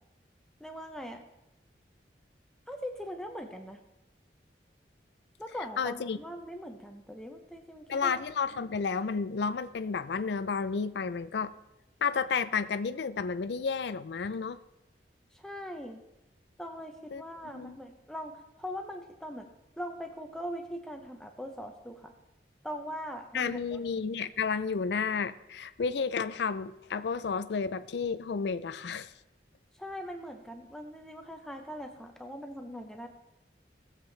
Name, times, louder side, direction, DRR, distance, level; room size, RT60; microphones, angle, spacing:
voice 1, 0.6-1.2 2.7-3.8 5.4-8.1 15.3-16.0 16.6-19.5 19.8-22.1 22.6-23.8 29.7-33.1, equal, 5° left, 4 dB, 0.7 m, -41 dB
voice 2, 5.8-6.2 7.9-11.5 12.0-14.6 17.1-17.2 17.5-17.8 23.3-29.1, left 5 dB, 70° left, 13 dB, 0.4 m, -31 dB
17.5 x 7.5 x 3.3 m, 0.95 s
head